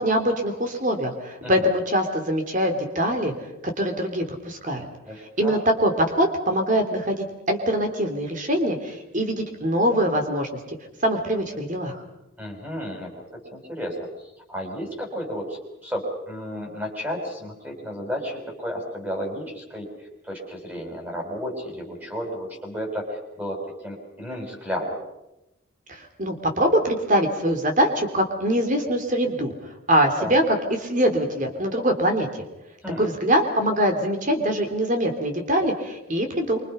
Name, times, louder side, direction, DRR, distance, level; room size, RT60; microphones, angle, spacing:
voice 1, 0.0-3.3 3.8-4.9 5.4-10.5 11.0-12.0 26.2-29.5 29.9-30.4 30.8-32.4 33.0-36.6, equal, 40° right, 5 dB, 3.3 m, -23 dB
voice 2, 5.1-5.6 12.4-14.0 14.5-25.0 30.2-30.4 32.8-33.1, equal, 10° right, 1 dB, 5.8 m, -33 dB
27.0 x 25.0 x 5.7 m, 0.93 s
head